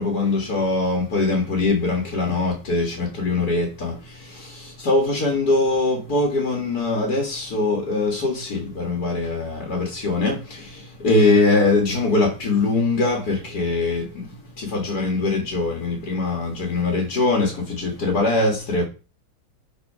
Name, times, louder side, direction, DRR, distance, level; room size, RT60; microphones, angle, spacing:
voice 1, 0.0-18.8, left 3 dB, 80° left, 2.5 m, -22 dB
11.5 x 4.2 x 4.9 m
omnidirectional pair, 1.7 m